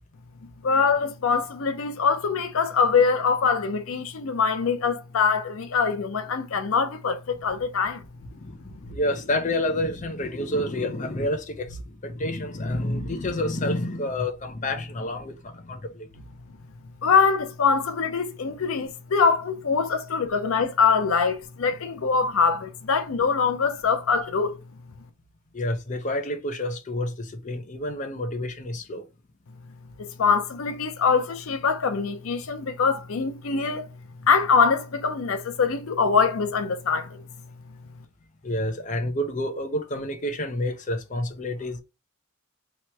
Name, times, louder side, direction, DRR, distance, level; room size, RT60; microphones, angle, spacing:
voice 1, 0.6-8.0 17.0-24.6 30.0-33.8 34.2-37.2, left 5 dB, 80° left, 0.5 m, -23 dB
voice 2, 8.3-16.1 25.5-29.1 38.4-41.8, left 1 dB, 35° left, 0.6 m, -29 dB
3.0 x 3.0 x 4.4 m
head